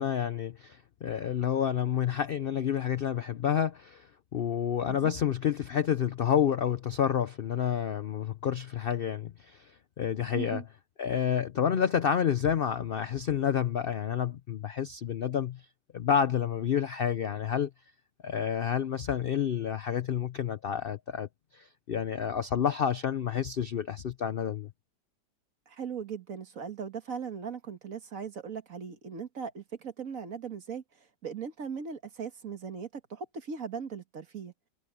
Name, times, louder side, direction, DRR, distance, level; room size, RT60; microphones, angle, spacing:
voice 1, 0.0-4.1 4.3-9.7 10.0-10.6 11.0-15.6 15.9-17.7 18.2-21.3 21.5-24.7, left 8 dB, 75° left, 0.5 m, -29 dB
voice 2, 10.3-10.6 25.7-34.5, right 6 dB, 55° right, 1.9 m, -39 dB
omnidirectional pair, 1.8 m